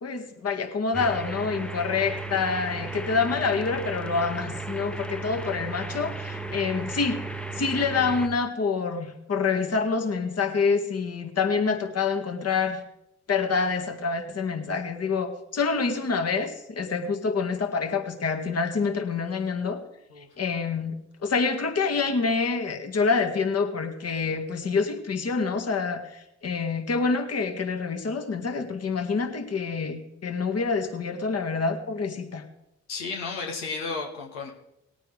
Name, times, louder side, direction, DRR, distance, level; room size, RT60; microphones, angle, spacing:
voice 1, 0.0-7.3 7.5-12.8 13.3-19.8 20.2-20.9 21.2-32.4, left 4 dB, 45° left, 5 dB, 1.8 m, -27 dB
sound 1, 0.9-8.3, right 3 dB, 5° left, 0.9 m, -35 dB
voice 2, 32.9-34.5, left 4 dB, 85° left, 0 dB, 1.3 m, -33 dB
19.0 x 9.0 x 3.4 m, 0.85 s
hypercardioid pair, 45°, 33 cm